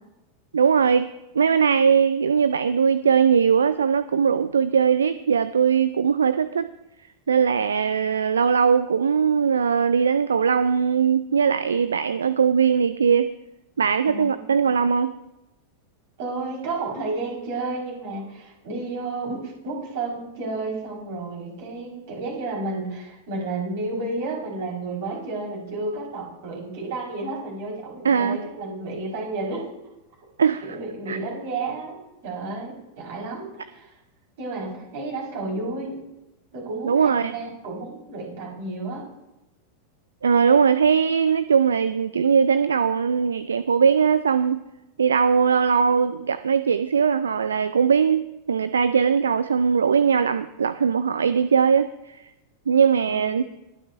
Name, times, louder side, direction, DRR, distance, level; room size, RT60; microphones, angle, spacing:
voice 1, 0.5-1.1 1.3-6.7 7.3-13.3 13.8-15.2 28.0-28.4 30.4-30.6 31.1-31.2 36.8-37.3 40.2-44.6 45.0-52.2 52.7-53.4, right 6 dB, 70° right, 14 dB, 0.4 m, -20 dB
voice 2, 14.1-14.6 16.2-29.7 30.7-33.9 34.4-36.0 36.5-39.0 53.1-53.4, right 3 dB, 50° right, -3 dB, 4.7 m, -31 dB
21.5 x 9.1 x 2.6 m, 0.97 s
figure-of-eight pair, 90°, 0 cm